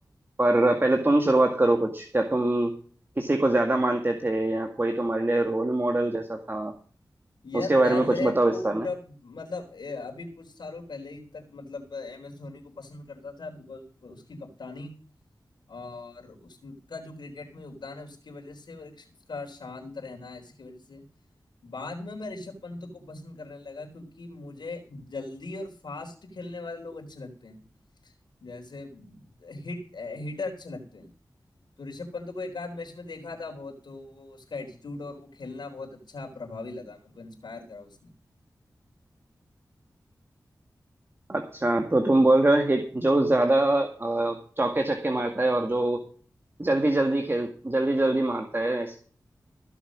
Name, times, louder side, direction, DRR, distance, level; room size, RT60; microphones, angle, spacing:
voice 1, 0.4-2.7 3.2-6.7 7.5-8.9 41.3-46.0 46.6-49.0, right 2 dB, 30° right, 5 dB, 2.0 m, -23 dB
voice 2, 7.4-14.9 15.7-21.1 21.6-27.6 28.0-28.1 28.4-31.1 31.8-38.1, left 3 dB, 80° left, 1 dB, 3.9 m, -39 dB
16.0 x 7.0 x 6.2 m, 0.43 s
cardioid pair, 40°, 8 cm